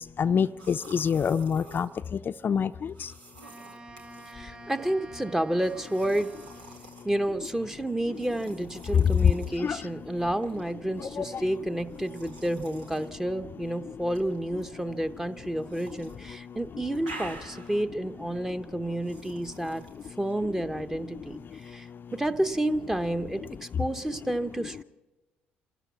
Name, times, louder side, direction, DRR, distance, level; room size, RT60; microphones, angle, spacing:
voice 1, 0.2-1.9 2.4-2.7 8.9-9.3 9.6-9.8 11.0-11.3, left 7 dB, 45° left, 9 dB, 0.6 m, -24 dB
sound 1, 0.6-1.9 2.9-4.4 5.6-7.1 8.1-9.6 10.4-10.7 11.9-13.1 14.0-14.7 15.6-16.2 16.5-17.9 19.0-20.1, right 2 dB, 85° right, 1.9 m, -48 dB
Wind instrument woodwind instrument, 3.4-6.9, right 3 dB, 30° right, 3.2 m, -48 dB
voice 2, 4.3-6.4 7.0-19.8 20.2-24.8, right 1 dB, 10° right, 9 dB, 1.0 m, -30 dB
27.5 x 13.0 x 7.2 m, 1.1 s
hypercardioid pair, 50°, 5 cm